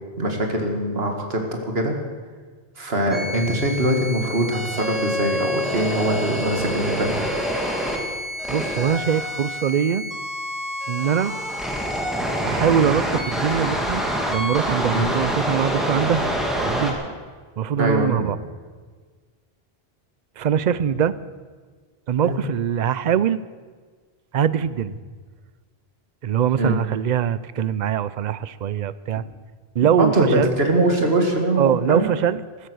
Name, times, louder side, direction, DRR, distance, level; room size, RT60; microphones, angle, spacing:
voice 1, 0.2-2.0 2.8-7.1 12.5-12.6 14.9-15.1 17.8-18.3 22.2-22.4 26.6-26.8 30.0-32.1, right 1 dB, 75° right, 3 dB, 2.3 m, -22 dB
sound 1, 3.1-16.9, equal, ahead, 2.1 m, -27 dB
voice 2, 8.5-10.0 10.9-11.3 12.4-14.0 14.3-16.3 16.6-17.0 17.6-18.4 20.4-21.1 22.1-23.4 24.3-25.0 26.2-29.2 29.7-30.5 31.6-32.7, right 8 dB, 55° right, 17 dB, 0.6 m, -22 dB
14.5 x 13.5 x 6.3 m, 1.5 s
omnidirectional pair, 1.0 m